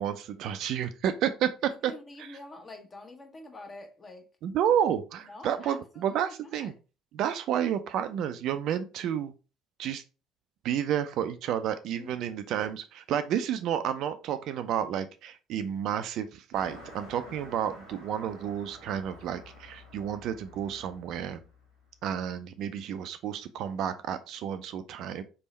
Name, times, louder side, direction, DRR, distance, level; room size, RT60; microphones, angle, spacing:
voice 1, 0.0-1.9 2.2-2.4 4.4-6.7 7.1-9.3 9.8-10.0 10.6-21.4 22.0-25.2, right 9 dB, 60° right, 0.4 m, -31 dB
voice 2, 1.7-4.3 5.2-6.7 12.0-12.1, left 2 dB, 30° left, 1.2 m, -46 dB
Car passing by, 16.5-22.3, left 1 dB, 90° left, 1.8 m, -50 dB
4.2 x 3.5 x 3.1 m
figure-of-eight pair, 55°, 0 cm